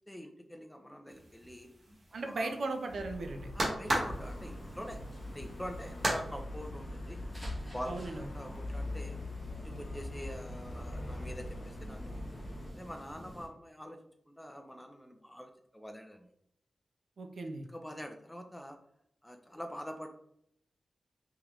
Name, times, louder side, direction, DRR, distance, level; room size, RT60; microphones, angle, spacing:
voice 1, 0.1-1.7 2.1-2.5 3.5-5.0 5.3-7.2 7.7-9.2 9.5-12.2 12.7-14.0 14.3-16.3 17.7-18.8 19.2-20.1, equal, 5° left, 4 dB, 0.4 m, -45 dB
sound 1, 1.1-6.2, right 1 dB, 45° right, 1.0 m, -36 dB
voice 2, 2.1-3.5 7.9-8.3 17.2-17.7, right 2 dB, 60° right, 5 dB, 0.5 m, -37 dB
Traffic noise roadway noise, 2.9-12.7, left 1 dB, 50° left, 0.8 m, -43 dB
sound 2, 3.9-13.5, equal, 10° right, 0.9 m, -47 dB
3.6 x 3.0 x 3.0 m, 0.73 s
wide cardioid pair, 170°, 0 cm